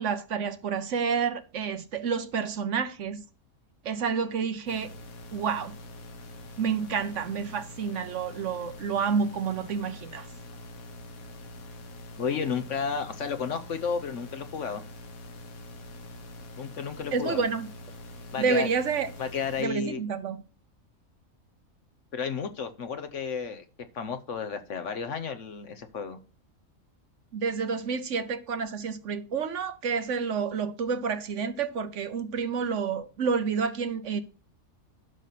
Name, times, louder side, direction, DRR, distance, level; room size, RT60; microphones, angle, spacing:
voice 1, 0.0-3.2 3.8-4.9 5.3-5.8 6.6-10.3 17.1-17.7 18.4-19.1 19.6-20.4 27.3-34.2, right 6 dB, 60° right, 1.1 m, -29 dB
sound 1, 4.7-19.7, left 1 dB, 80° left, 1.6 m, -45 dB
voice 2, 12.2-14.8 16.6-17.4 18.3-18.7 19.2-20.0 22.1-23.6 23.9-26.2, left 6 dB, 60° left, 1.3 m, -32 dB
11.5 x 6.2 x 4.1 m
omnidirectional pair, 1.5 m